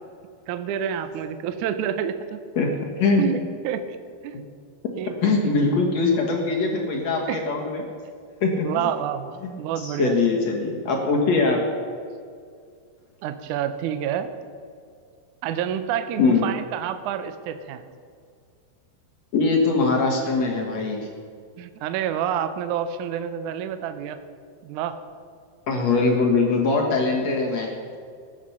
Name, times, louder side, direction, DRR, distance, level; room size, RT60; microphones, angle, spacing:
voice 1, 0.5-2.4 3.2-3.4 3.6-3.9 4.2-4.4 5.0-5.6 7.3-7.4 8.6-10.1 13.2-14.3 15.4-17.8 21.6-24.2 24.6-25.0, right 9 dB, 90° right, 10 dB, 1.7 m, -28 dB
voice 2, 5.2-7.9 8.4-8.9 9.4-11.6 16.2-16.5 19.3-21.1 25.7-27.7, left 3 dB, 60° left, 0 dB, 2.0 m, -22 dB
19.5 x 7.9 x 5.7 m, 2.2 s
omnidirectional pair, 4.5 m